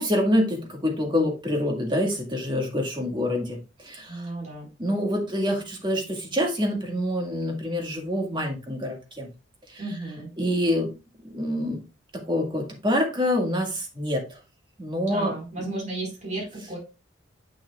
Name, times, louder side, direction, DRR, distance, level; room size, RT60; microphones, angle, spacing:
voice 1, 0.0-4.3 4.8-9.3 9.7-9.8 10.4-10.9 11.2-11.8 12.3-14.3 14.8-15.7, left 1 dB, 25° right, 1 dB, 1.9 m, -26 dB
voice 2, 4.1-4.7 9.8-10.3 15.1-16.8, right 2 dB, 40° right, -2 dB, 4.4 m, -34 dB
8.5 x 6.3 x 2.3 m, 0.29 s
head